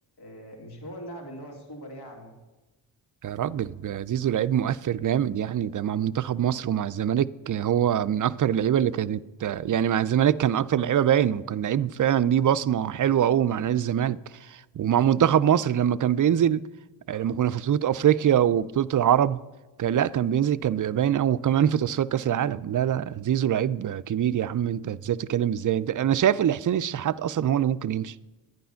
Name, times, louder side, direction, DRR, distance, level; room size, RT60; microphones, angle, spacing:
voice 1, 0.2-2.3, equal, 55° left, 2.7 m, -41 dB
voice 2, 3.2-16.6 17.1-19.4 19.8-28.1, right 10 dB, 45° right, 0.5 m, -24 dB
11.0 x 9.3 x 5.7 m
cardioid pair, 45°, 45 cm